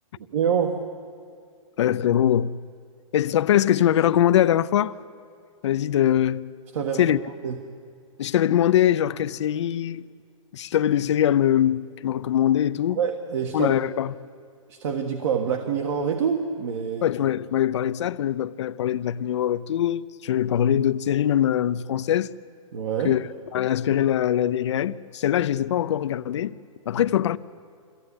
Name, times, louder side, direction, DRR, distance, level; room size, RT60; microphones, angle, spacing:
voice 1, 0.3-0.9 6.7-7.1 7.4-7.6 13.0-13.7 14.7-17.1 22.7-23.2, right 7 dB, 55° right, 1.6 m, -26 dB
voice 2, 1.8-2.5 3.1-5.0 5.6-6.5 7.0-7.2 8.2-10.0 10.5-13.0 13.5-14.1 17.0-22.3 23.0-23.2 23.5-26.5 26.9-27.4, left 11 dB, 55° left, 0.6 m, -22 dB
22.5 x 15.5 x 9.7 m
hypercardioid pair, 165°, 18 cm